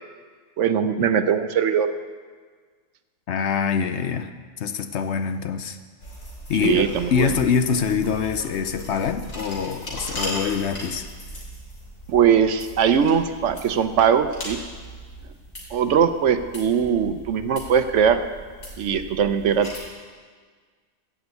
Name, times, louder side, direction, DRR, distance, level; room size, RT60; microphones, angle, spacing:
voice 1, 0.6-1.9 6.6-7.3 12.1-14.6 15.7-18.2 18.8-19.7, right 7 dB, 70° right, 10 dB, 1.0 m, -20 dB
voice 2, 3.3-4.3 4.6-5.8 6.5-11.1, left 6 dB, 65° left, 9 dB, 0.9 m, -24 dB
sound 1, 6.0-19.8, right 1 dB, 90° left, 3.4 m, -38 dB
15.5 x 6.2 x 8.2 m, 1.6 s
omnidirectional pair, 1.4 m